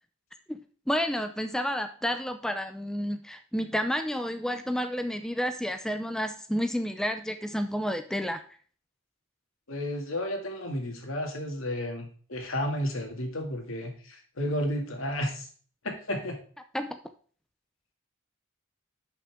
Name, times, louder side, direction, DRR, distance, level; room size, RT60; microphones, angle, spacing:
voice 1, 0.9-8.4 16.7-17.0, equal, 5° left, 7 dB, 0.4 m, -30 dB
voice 2, 9.7-15.5 15.8-16.4, left 1 dB, 80° left, 3 dB, 2.1 m, -32 dB
11.0 x 5.8 x 3.5 m, 0.44 s
head